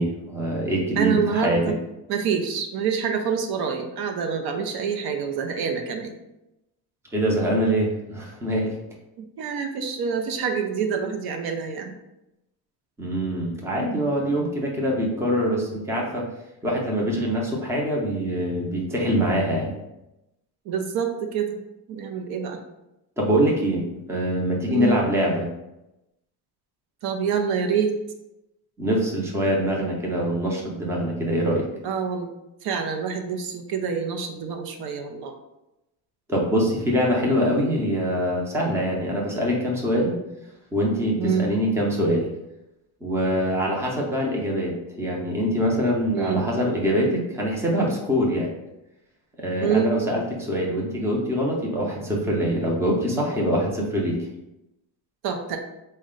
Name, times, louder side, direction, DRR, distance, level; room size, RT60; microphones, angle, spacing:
voice 1, 0.0-1.6 7.1-8.7 13.0-16.3 16.6-19.7 23.2-23.8 24.1-25.5 28.8-31.7 36.3-40.1 40.7-42.3 43.0-48.5 49.4-54.3, equal, 5° right, -2 dB, 0.6 m, -24 dB
voice 2, 0.7-1.7 2.1-6.1 9.2-11.9 20.7-21.6 21.9-22.6 24.7-25.0 27.0-28.0 31.8-32.3 32.6-35.3 40.0-40.2 41.2-41.5 46.1-46.5 49.6-50.0 55.2-55.6, right 6 dB, 65° right, 4 dB, 0.6 m, -26 dB
4.1 x 2.2 x 3.7 m, 0.93 s
cardioid pair, 145°, 41 cm